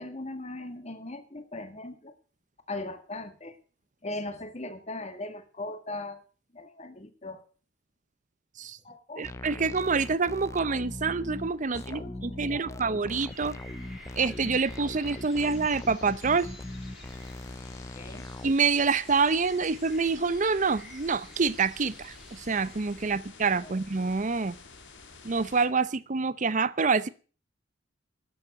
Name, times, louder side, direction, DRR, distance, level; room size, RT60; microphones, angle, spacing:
voice 1, 0.0-2.1 2.7-3.5 4.0-6.2 6.5-7.4 8.8-9.3 11.8-12.8 17.9-18.3 23.1-23.2 23.6-23.8, left 2 dB, 35° left, 1.9 m, -39 dB
sound 1, 9.2-18.5, left 1 dB, 15° left, 0.5 m, -40 dB
voice 2, 9.2-13.6 14.2-16.5 18.4-24.6 25.2-27.1, right 4 dB, 40° right, 0.7 m, -27 dB
sound 2, 9.3-25.7, left 3 dB, 75° left, 2.1 m, -51 dB
sound 3, 13.3-23.2, right 1 dB, ahead, 2.0 m, -51 dB
13.0 x 7.3 x 8.0 m
head